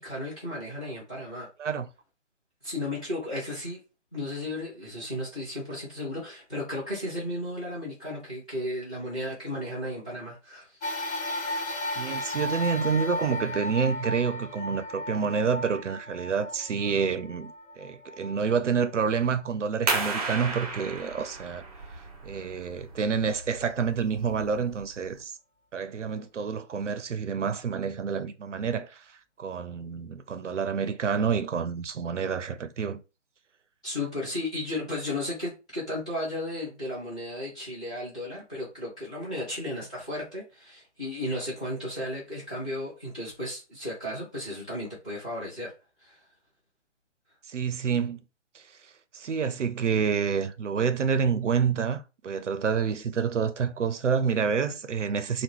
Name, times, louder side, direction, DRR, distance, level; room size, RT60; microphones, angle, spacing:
voice 1, 0.0-1.5 2.6-3.8 4.1-11.0 33.8-45.7 46.0-46.2, left 1 dB, 5° left, 0.5 m, -34 dB
sound 1, 10.8-19.4 20.0-20.1 21.2-21.3, left 1 dB, 30° left, 1.3 m, -35 dB
voice 2, 12.0-21.6 22.2-25.3 25.7-33.0 47.5-48.2 48.5-48.6 49.1-55.4, right 6 dB, 75° right, 0.6 m, -28 dB
sound 2, 19.9-25.2, right 3 dB, 30° right, 0.7 m, -34 dB
3.0 x 2.3 x 3.6 m
figure-of-eight pair, 145°, 36 cm